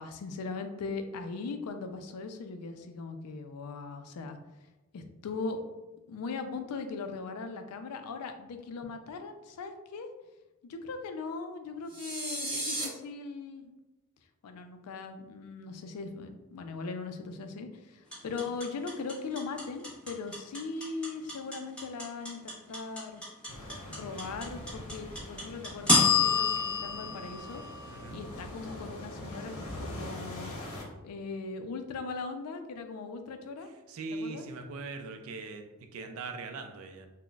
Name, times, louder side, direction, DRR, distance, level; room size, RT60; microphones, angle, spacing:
voice 1, 0.0-4.4 4.9-5.6 6.1-10.1 10.7-13.7 14.4-23.2 23.9-27.6 28.1-30.5 31.0-33.7 34.1-34.5, left 4 dB, 85° left, 7 dB, 0.4 m, -39 dB
sound 1, 11.9-12.8, right 1 dB, 20° right, 1.1 m, -34 dB
sound 2, 18.1-28.3, left 4 dB, 5° left, 0.9 m, -28 dB
sound 3, 23.5-30.8, left 1 dB, 70° left, 0.7 m, -43 dB
voice 2, 27.9-28.2 33.9-37.1, right 3 dB, 65° right, 6 dB, 0.3 m, -40 dB
3.8 x 2.1 x 2.3 m, 1.1 s
head